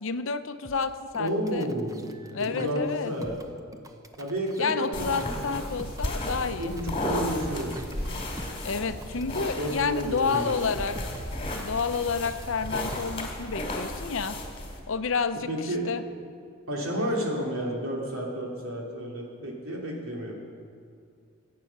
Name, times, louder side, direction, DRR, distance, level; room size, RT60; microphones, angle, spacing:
voice 1, 0.0-1.7 2.3-3.1 4.6-6.8 8.6-11.0 11.5-14.4 14.9-16.0 16.9-17.3, left 5 dB, 65° left, 10 dB, 0.6 m, -30 dB
sound 1, 0.6-13.0, right 1 dB, 15° right, 0.7 m, -47 dB
voice 2, 1.2-2.1 2.4-3.4 4.2-5.4 6.6-7.8 9.6-11.0 15.5-15.9 16.7-20.4, right 1 dB, 75° right, -2 dB, 2.9 m, -31 dB
sound 2, 4.9-14.8, left 1 dB, 25° left, 2.3 m, -34 dB
sound 3, 5.1-13.2, equal, 50° right, 2.6 m, -44 dB
21.5 x 8.6 x 5.9 m, 2.4 s
head